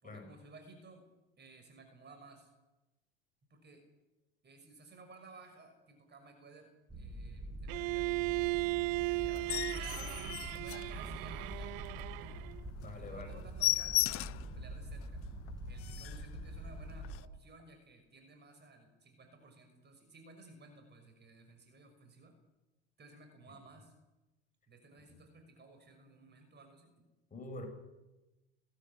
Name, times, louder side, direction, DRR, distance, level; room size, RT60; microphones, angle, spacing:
voice 1, 0.0-1.0 1.4-2.5 3.5-3.8 4.4-8.4 9.1-12.6 12.9-15.2 15.6-22.3 23.0-23.9 24.7-27.1, right 3 dB, 30° right, 5 dB, 6.1 m, -57 dB
sound 1, 6.9-17.2, right 1 dB, 10° right, 6.2 m, -45 dB
Bowed string instrument, 7.7-12.6, right 26 dB, 60° right, 0.7 m, -36 dB
sound 2, 9.3-11.5 11.9-12.0 12.4-12.5 12.8-12.9 13.2-14.5 15.0-15.1 15.5-15.6 15.8-16.3 17.0-17.2, left 17 dB, 40° left, 0.7 m, -35 dB
voice 2, 12.5-13.3 27.3-27.7, left 2 dB, 25° left, 3 dB, 7.7 m, -46 dB
19.5 x 16.0 x 9.8 m, 1.0 s
hypercardioid pair, 80°, 33 cm